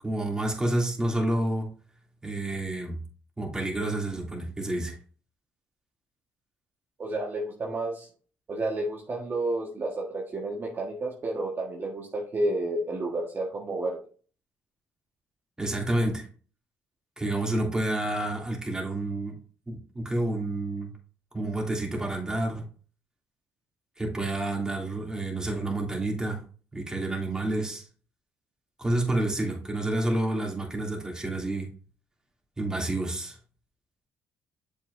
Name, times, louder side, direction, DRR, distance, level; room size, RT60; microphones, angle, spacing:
voice 1, 0.0-1.7 2.2-3.0 3.4-4.9 15.6-16.3 17.2-19.3 19.7-20.9 21.3-22.6 24.0-26.4 26.7-27.9 28.8-31.7 32.6-33.4, right 1 dB, 10° right, -1 dB, 2.8 m, -29 dB
voice 2, 7.0-8.1 8.5-14.0, right 2 dB, 40° right, -2 dB, 1.6 m, -31 dB
7.2 x 5.5 x 2.7 m, 0.40 s
cardioid pair, 80°, 6 cm